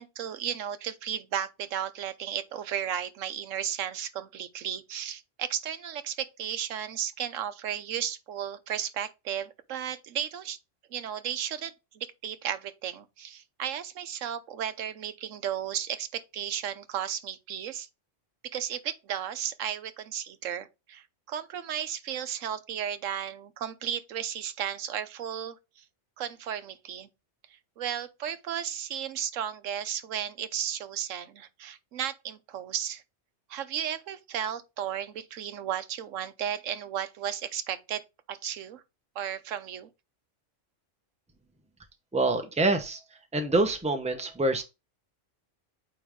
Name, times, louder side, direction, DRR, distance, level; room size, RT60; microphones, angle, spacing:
voice 1, 0.0-10.6 10.9-17.9 18.5-25.8 26.2-27.1 27.8-33.0 33.5-38.8 39.1-39.9, right 9 dB, 90° right, 1.1 m, -34 dB
voice 2, 42.1-43.0 43.3-44.6, right 2 dB, 5° right, 0.7 m, -26 dB
8.7 x 3.2 x 3.5 m
omnidirectional pair, 1.3 m